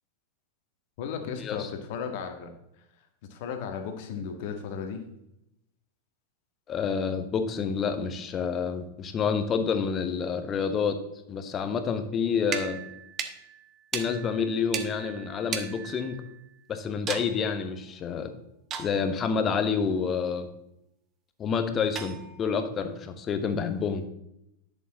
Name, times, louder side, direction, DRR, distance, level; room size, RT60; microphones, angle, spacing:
voice 1, 1.0-2.5 3.3-5.0, left 6 dB, 50° left, 5 dB, 1.6 m, -35 dB
voice 2, 6.7-11.0 11.3-12.8 13.9-16.2 16.7-18.3 18.8-20.5 21.4-24.0, left 6 dB, 25° left, 8 dB, 1.1 m, -28 dB
sound 1, 12.4-16.6 17.1-17.4 18.7-19.2 22.0-22.6, right 7 dB, 30° right, 1.0 m, -37 dB
11.0 x 6.9 x 4.1 m, 0.82 s
figure-of-eight pair, 90°, 0 cm